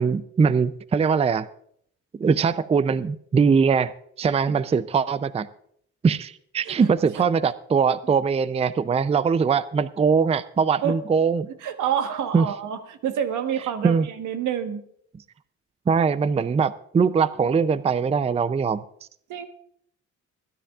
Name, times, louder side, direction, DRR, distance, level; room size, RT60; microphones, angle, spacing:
voice 1, 0.0-1.5 2.2-3.9 4.2-5.5 6.0-11.5 12.3-12.5 13.8-14.1 15.9-18.8, right 5 dB, 20° right, 15 dB, 0.4 m, -21 dB
voice 2, 11.6-14.8 19.3-19.5, right 8 dB, 80° right, 7 dB, 1.3 m, -28 dB
25.0 x 10.5 x 2.4 m, 0.67 s
cardioid pair, 90°, 30 cm